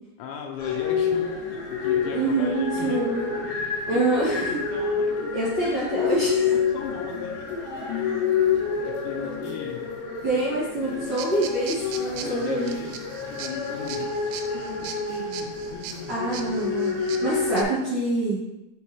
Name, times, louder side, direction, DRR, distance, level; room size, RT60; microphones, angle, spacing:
voice 1, 0.2-3.1 3.4-5.3 5.6-7.4 8.5-9.8 10.3-10.4 10.8-11.0 11.7-13.0 13.3-14.1 14.5-16.2, left 6 dB, 85° left, 2 dB, 3.0 m, -37 dB
sound 1, 0.6-17.6, left 6 dB, 70° left, 2.8 m, -28 dB
voice 2, 2.1-3.4 3.9-4.4 5.3-6.3 10.2-12.7 16.1-18.4, right 2 dB, 40° right, -11 dB, 2.1 m, -26 dB
sound 2, 11.0-17.6, right 8 dB, 85° right, 2.9 m, -40 dB
6.2 x 5.7 x 2.9 m, 0.95 s
omnidirectional pair, 5.2 m